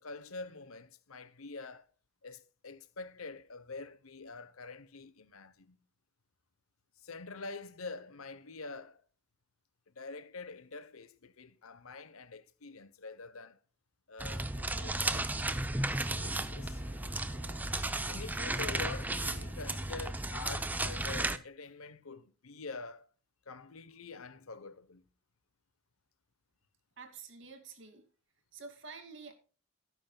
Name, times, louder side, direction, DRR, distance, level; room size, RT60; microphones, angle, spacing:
voice 1, 0.0-1.8 2.2-5.8 7.0-9.0 10.0-13.6 14.1-15.3 15.7-16.8 18.1-23.1 23.5-25.0, left 3 dB, 85° left, 0.9 m, -46 dB
sound 1, 14.2-21.4, right 2 dB, 10° right, 0.5 m, -34 dB
sound 2, 14.6-19.6, left 1 dB, 65° left, 1.3 m, -52 dB
voice 2, 27.0-28.1 28.5-29.4, right 4 dB, 60° right, 2.4 m, -49 dB
17.0 x 9.5 x 2.3 m
head